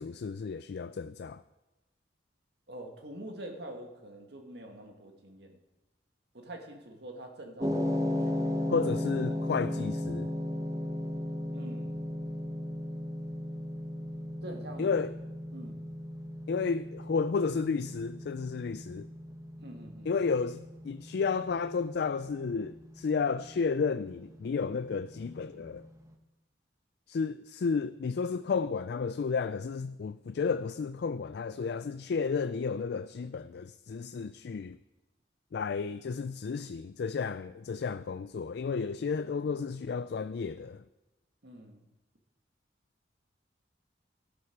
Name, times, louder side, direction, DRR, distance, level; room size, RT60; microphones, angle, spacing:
voice 1, 0.0-1.4 8.7-10.3 14.8-15.2 16.5-19.1 20.1-25.9 27.1-34.8 35.5-40.8, left 5 dB, 65° left, 0.4 m, -32 dB
voice 2, 2.7-5.6 6.3-8.6 11.5-12.0 14.4-14.9 15.5-15.8 19.6-20.1 41.4-41.8, right 1 dB, 65° right, 2.0 m, -45 dB
sound 1, 7.6-25.9, left 1 dB, 20° right, 1.0 m, -36 dB
12.5 x 11.5 x 4.7 m
head